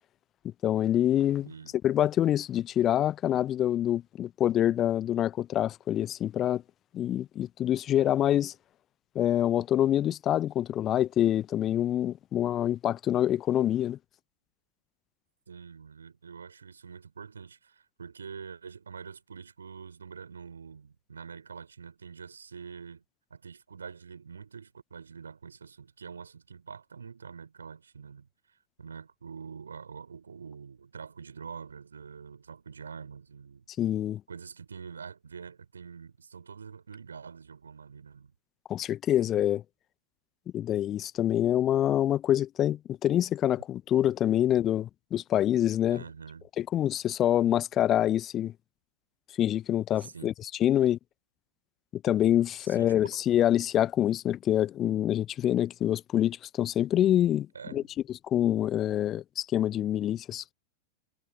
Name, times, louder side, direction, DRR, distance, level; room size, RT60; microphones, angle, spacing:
voice 1, 0.6-1.5 1.8-6.6 6.9-8.5 9.1-14.0 33.8-34.2 38.7-39.6 40.5-46.0 46.6-48.5 49.4-50.3 50.6-51.0 51.9-57.8 58.3-60.5, left 11 dB, 30° left, 0.9 m, -26 dB
voice 2, 1.4-1.7 15.5-23.0 23.3-33.6 34.3-38.3 45.9-46.5 50.0-50.3 52.6-53.2 57.5-57.9, right 6 dB, 70° right, 3.9 m, -45 dB
figure-of-eight pair, 90°, 0 cm